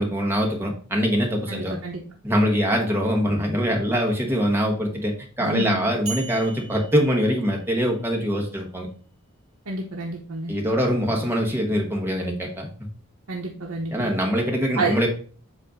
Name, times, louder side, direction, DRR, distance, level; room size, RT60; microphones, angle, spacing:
voice 1, 0.0-1.8 2.2-8.9 10.5-12.7 13.9-15.1, equal, 10° right, 0 dB, 1.1 m, -23 dB
voice 2, 1.5-2.0 5.4-5.8 9.7-10.5 13.3-14.1 14.7-15.0, right 2 dB, 70° right, -1 dB, 0.8 m, -29 dB
sound 1, 6.1-8.1, right 5 dB, 35° right, 2.8 m, -39 dB
7.5 x 2.6 x 4.9 m, 0.41 s
head